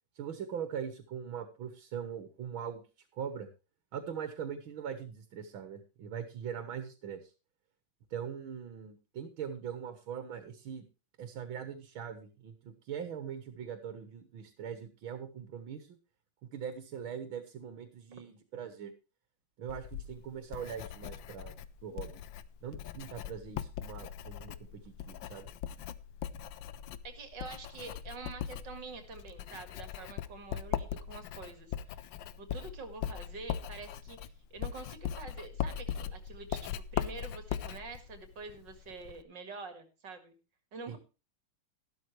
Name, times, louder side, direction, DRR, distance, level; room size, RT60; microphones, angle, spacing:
voice 1, 0.2-2.8 3.1-3.5 3.9-7.3 8.1-10.9 11.2-16.0 16.5-18.9 19.6-21.5 21.8-22.2 22.6-25.5 40.9-41.0, right 8 dB, 80° right, 8 dB, 2.2 m, -41 dB
Writing, 19.7-39.2, left 10 dB, 75° left, 1.4 m, -40 dB
voice 2, 27.0-40.4 40.7-41.0, right 4 dB, 60° right, 7 dB, 2.7 m, -46 dB
13.5 x 12.5 x 3.2 m, 0.32 s
omnidirectional pair, 2.2 m